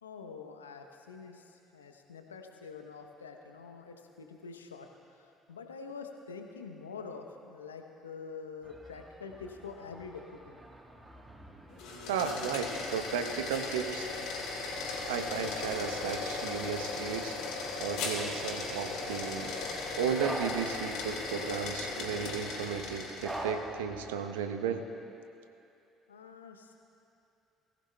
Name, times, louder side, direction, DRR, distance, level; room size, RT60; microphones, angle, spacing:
voice 1, 0.0-4.9 5.2-10.6 26.1-26.7, left 5 dB, 90° left, 4 dB, 0.8 m, -46 dB
sound 1, 8.6-24.1, right 1 dB, 15° right, 1.3 m, -47 dB
sound 2, 11.7-23.5, left 3 dB, 65° left, 3.0 m, -37 dB
voice 2, 12.1-14.1 15.1-17.4 17.8-19.6 20.0-24.9, right 7 dB, 80° right, 7 dB, 0.8 m, -34 dB
21.5 x 15.0 x 2.3 m, 2.8 s
hypercardioid pair, 55°, 0 cm